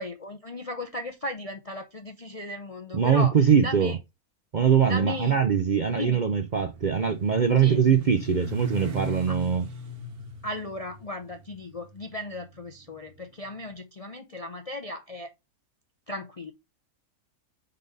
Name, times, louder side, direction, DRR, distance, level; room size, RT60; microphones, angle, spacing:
voice 1, 0.0-3.3 3.6-4.0 4.8-5.4 5.9-6.2 7.6-7.8 9.3-9.4 10.4-15.3 16.1-16.5, left 1 dB, 40° left, 0.5 m, -36 dB
voice 2, 2.9-4.0 4.5-9.6, right 7 dB, 50° right, 0.5 m, -22 dB
Motorcycle, 5.5-13.5, left 2 dB, 85° right, 1.6 m, -40 dB
5.3 x 4.0 x 5.2 m
omnidirectional pair, 1.5 m